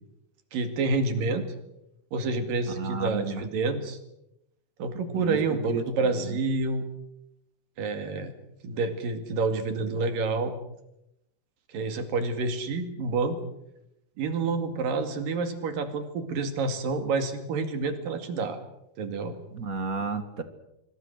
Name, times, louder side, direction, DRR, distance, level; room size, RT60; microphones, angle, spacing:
voice 1, 0.5-1.5 2.1-4.0 4.8-6.9 7.8-8.3 8.6-10.5 11.7-13.4 14.2-18.6 19.0-19.3, right 3 dB, 65° right, 8 dB, 3.9 m, -28 dB
voice 2, 2.8-3.4 5.1-5.4 5.7-5.8 6.1-6.4 19.5-20.4, right 4 dB, 50° right, 9 dB, 1.0 m, -32 dB
26.5 x 24.5 x 6.5 m, 0.84 s
omnidirectional pair, 4.4 m